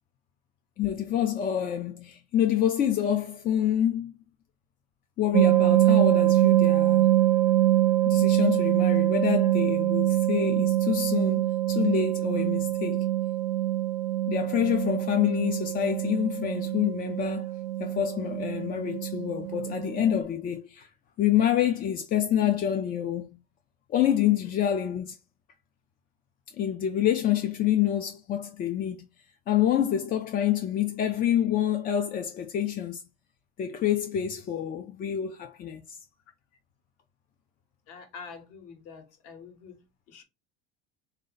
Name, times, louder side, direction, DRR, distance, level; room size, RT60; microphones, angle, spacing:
voice 1, 0.8-4.2 5.2-7.1 8.1-13.1 14.3-17.5 17.8-20.9 21.2-23.3 23.9-25.2 26.6-29.1 29.5-33.0 33.6-36.0, left 10 dB, 30° left, 0.3 m, -27 dB
sound 1, 5.3-20.2, right 14 dB, 70° right, 0.6 m, -24 dB
voice 2, 37.9-39.7 40.1-40.2, left 5 dB, 55° left, 1.2 m, -45 dB
3.8 x 2.6 x 3.9 m
cardioid pair, 155°, 30 cm